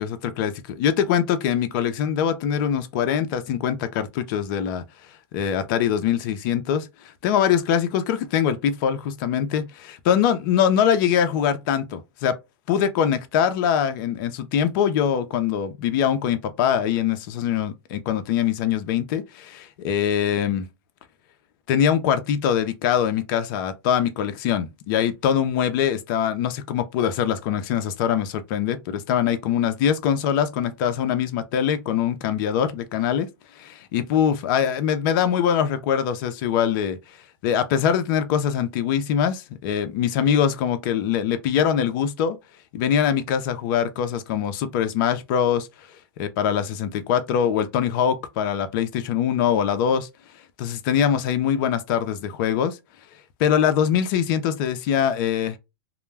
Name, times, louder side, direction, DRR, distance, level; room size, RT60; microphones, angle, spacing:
voice 1, 0.0-4.8 5.3-6.9 7.2-12.3 12.7-20.7 21.7-33.3 33.6-37.0 37.4-42.4 42.7-45.7 46.2-50.1 50.6-52.8 53.4-55.6, left 8 dB, 50° left, 0.5 m, -23 dB
2.2 x 2.1 x 3.2 m
hypercardioid pair, 125°, 13 cm